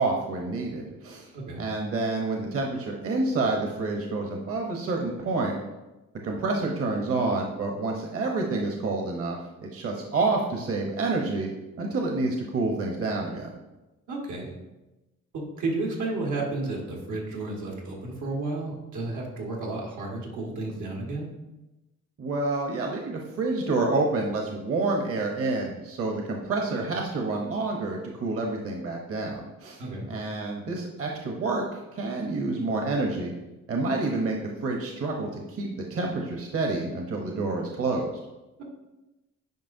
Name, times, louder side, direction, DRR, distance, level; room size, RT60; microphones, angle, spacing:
voice 1, 0.0-1.3 1.6-5.6 6.2-11.5 11.8-13.5 22.2-31.6 31.9-33.3 33.7-38.1, right 3 dB, 50° right, 1 dB, 0.9 m, -28 dB
voice 2, 14.1-14.5 15.3-21.3 29.8-30.1, right 2 dB, 85° right, -1 dB, 1.6 m, -32 dB
9.3 x 5.0 x 2.6 m, 1.0 s
cardioid pair, 110°, 29 cm